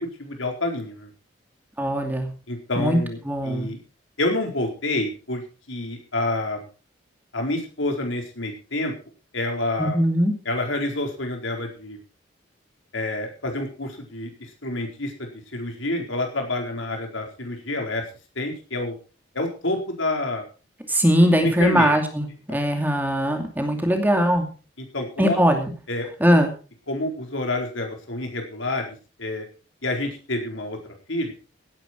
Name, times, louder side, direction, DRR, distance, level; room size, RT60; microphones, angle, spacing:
voice 1, 0.2-1.1 2.5-3.2 3.5-3.8 4.2-5.4 5.7-6.6 7.3-8.9 9.3-10.0 10.5-12.0 12.9-14.3 14.6-18.0 18.4-18.9 19.3-20.4 21.4-21.9 22.5-22.6 24.9-25.4 25.9-26.1 26.9-29.5 29.8-30.8 31.1-31.3, left 2 dB, 85° left, 2 dB, 4.5 m, -28 dB
voice 2, 1.8-2.3 2.8-3.0 3.2-3.7 9.8-10.4 20.9-24.5 25.2-25.7 26.2-26.5, equal, 10° right, 4 dB, 2.5 m, -20 dB
17.0 x 10.5 x 4.6 m, 0.36 s
head